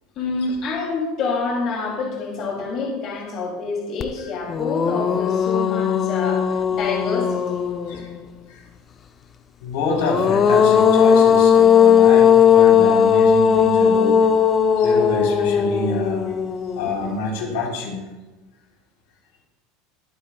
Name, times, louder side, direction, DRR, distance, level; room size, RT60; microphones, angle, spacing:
voice 1, 0.1-7.6, left 4 dB, 40° left, -2 dB, 2.7 m, -27 dB
sound 1, 4.0-4.1 4.5-8.2 9.8-17.1, left 7 dB, 25° left, 0.5 m, -17 dB
voice 2, 9.6-14.2 14.8-16.4 16.8-18.0, left 3 dB, 80° left, -2 dB, 3.7 m, -27 dB
23.0 x 8.4 x 2.3 m, 1.1 s
supercardioid pair, 155°, 0 cm